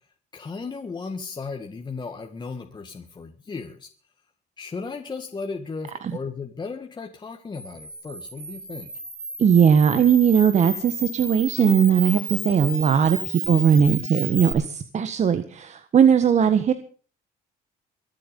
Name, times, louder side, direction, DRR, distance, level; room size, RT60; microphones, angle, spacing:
voice 1, 0.3-3.9 4.6-8.9, left 4 dB, 25° left, 3 dB, 2.0 m, -35 dB
Camera, 7.5-14.5, right 2 dB, 15° right, 6.3 m, -33 dB
voice 2, 9.4-16.7, right 7 dB, 45° right, 10 dB, 1.4 m, -19 dB
23.5 x 8.4 x 5.4 m, 0.41 s
cardioid pair, 110°, 17 cm